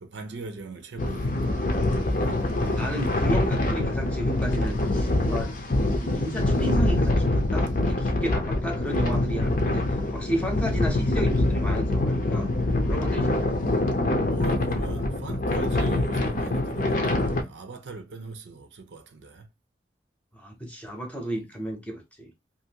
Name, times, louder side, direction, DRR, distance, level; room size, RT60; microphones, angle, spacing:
voice 1, 0.0-1.5 2.1-2.8 6.4-6.9 14.3-19.5, right 3 dB, 75° right, 0.5 m, -41 dB
sound 1, 1.0-17.4, left 2 dB, 50° left, 0.7 m, -25 dB
voice 2, 2.6-5.5 5.9-12.5 12.8-13.7 20.4-22.3, equal, 10° left, 0.8 m, -33 dB
2.7 x 2.6 x 2.8 m
head